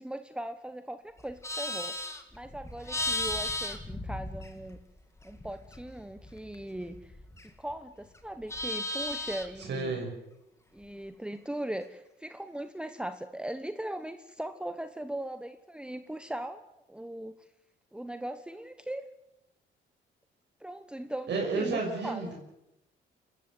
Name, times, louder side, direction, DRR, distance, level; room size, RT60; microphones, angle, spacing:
voice 1, 0.0-2.0 2.3-4.8 5.2-7.1 7.6-10.0 10.7-17.3 17.9-19.0 20.6-22.3, right 1 dB, 5° right, 10 dB, 1.1 m, -39 dB
Livestock farm animals working animals, 1.2-4.9 5.2-7.7 8.1-9.6, left 1 dB, 15° left, 2.5 m, -36 dB
voice 2, 9.6-10.1 21.3-22.3, right 3 dB, 60° right, 0 dB, 6.2 m, -31 dB
26.5 x 14.5 x 8.2 m, 0.86 s
cardioid pair, 90°, 20 cm